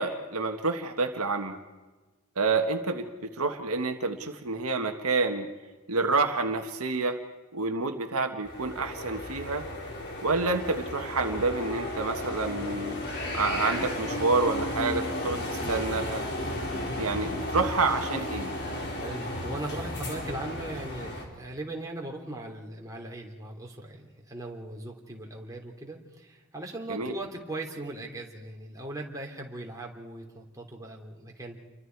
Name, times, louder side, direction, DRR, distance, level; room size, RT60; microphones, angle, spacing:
voice 1, 0.0-1.6 2.3-5.5 5.9-7.2 7.5-9.6 10.2-16.2 17.0-18.5 26.9-27.1, right 3 dB, 75° right, 5 dB, 1.6 m, -28 dB
sound 1, 8.5-21.2, left 1 dB, 50° left, 4.2 m, -34 dB
voice 2, 19.0-31.6, right 2 dB, 15° right, -1 dB, 3.1 m, -39 dB
29.0 x 23.5 x 4.7 m, 1.2 s
head